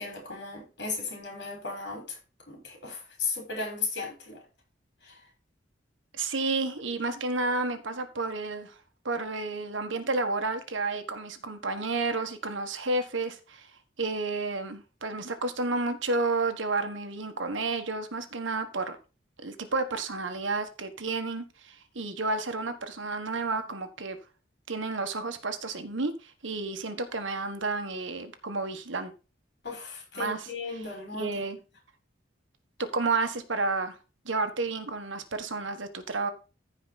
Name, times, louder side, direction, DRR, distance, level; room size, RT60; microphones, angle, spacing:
voice 1, 0.0-2.2 2.5-4.4 5.1-5.2 29.6-31.4, left 4 dB, 60° left, 5.4 m, -36 dB
voice 2, 6.1-8.8 9.0-13.7 14.0-19.0 19.4-24.2 24.7-29.1 30.1-30.9 31.2-31.6 32.8-34.0 34.2-36.3, right 3 dB, 80° right, 1.5 m, -31 dB
14.5 x 5.0 x 4.2 m
head